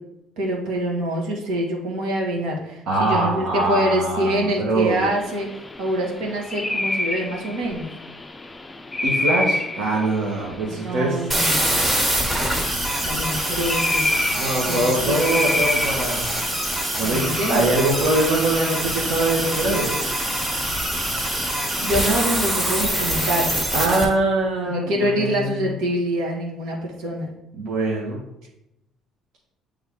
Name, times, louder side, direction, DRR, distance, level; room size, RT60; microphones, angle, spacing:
voice 1, 0.4-5.5 5.8-7.9 10.7-11.6 13.0-14.1 14.7-15.2 17.0-17.7 21.8-23.6 24.6-27.3, equal, 85° right, -2 dB, 1.8 m, -25 dB
voice 2, 2.9-5.0 9.0-11.3 14.3-16.3 17.0-19.9 23.7-25.7 27.6-28.2, right 2 dB, 65° right, -4 dB, 1.2 m, -23 dB
sound 1, 4.9-22.1, left 2 dB, 15° left, 0.4 m, -30 dB
sound 2, 11.3-24.0, right 1 dB, 15° right, 1.5 m, -24 dB
7.9 x 3.5 x 3.6 m, 0.86 s
cardioid pair, 140°, 0 cm